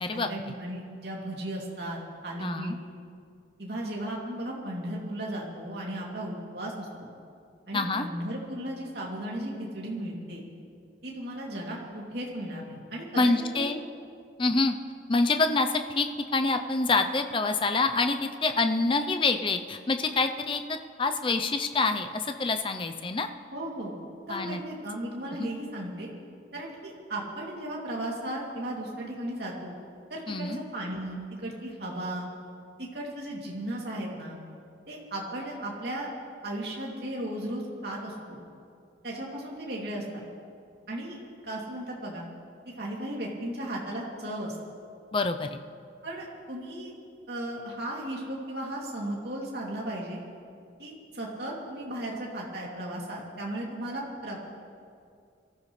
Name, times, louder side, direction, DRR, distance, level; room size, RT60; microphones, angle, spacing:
voice 1, 0.1-2.8 3.6-7.1 7.7-10.5 11.0-13.7 23.5-24.0 24.3-26.1 26.5-29.7 30.1-32.3 32.8-34.4 34.9-36.1 36.4-38.4 39.0-40.2 40.9-41.2 41.4-42.2 42.8-44.6 46.0-46.9 47.3-50.2 50.8-54.4, right 1 dB, 60° right, -3 dB, 2.8 m, -35 dB
voice 2, 2.4-2.8 7.7-8.1 13.1-13.8 14.4-14.8 15.1-16.1 16.3-23.3 24.3-24.6 25.3-25.5 30.3-30.6 45.1-45.6, left 3 dB, 30° left, 7 dB, 0.6 m, -26 dB
23.0 x 15.0 x 3.3 m, 2.3 s
head